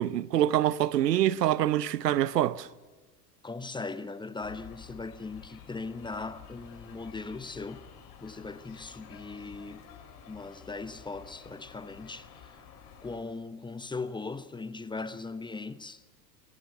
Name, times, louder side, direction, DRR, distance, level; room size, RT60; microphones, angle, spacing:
voice 1, 0.0-2.7, right 12 dB, 75° right, 0.9 m, -25 dB
voice 2, 3.4-7.9 8.2-9.9 10.3-12.7 13.0-16.0, left 3 dB, 10° left, 0.9 m, -39 dB
sound 1, 4.4-13.2, left 8 dB, 45° left, 4.8 m, -51 dB
24.0 x 18.0 x 6.8 m
hypercardioid pair, 90°, 49 cm